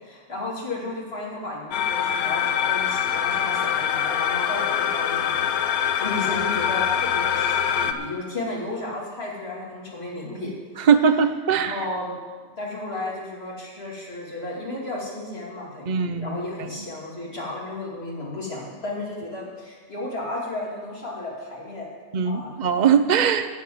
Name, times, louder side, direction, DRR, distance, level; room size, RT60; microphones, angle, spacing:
voice 1, 0.0-10.9 11.5-12.2 12.6-21.9 22.2-22.6, left 2 dB, 45° left, -4 dB, 3.0 m, -33 dB
sound 1, 1.7-7.9, left 9 dB, 85° left, 1.2 m, -24 dB
voice 2, 10.9-11.7 15.9-16.4 22.1-23.5, right 7 dB, 50° right, 9 dB, 0.5 m, -20 dB
13.5 x 5.2 x 9.2 m, 1.5 s
omnidirectional pair, 1.5 m